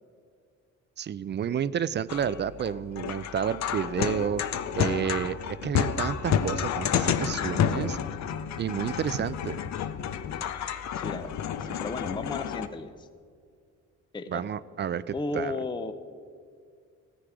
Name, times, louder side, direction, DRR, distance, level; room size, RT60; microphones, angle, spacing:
voice 1, 1.0-4.4 4.8-8.0 8.6-9.6 14.3-15.6, right 8 dB, 35° right, 17 dB, 0.4 m, -30 dB
sound 1, 2.1-12.7, left 8 dB, 65° left, 0.7 m, -30 dB
voice 2, 10.9-13.1 14.1-14.4 15.1-15.9, left 3 dB, 15° left, 10 dB, 0.5 m, -34 dB
14.5 x 9.9 x 4.8 m, 2.2 s
cardioid pair, 90°, 30 cm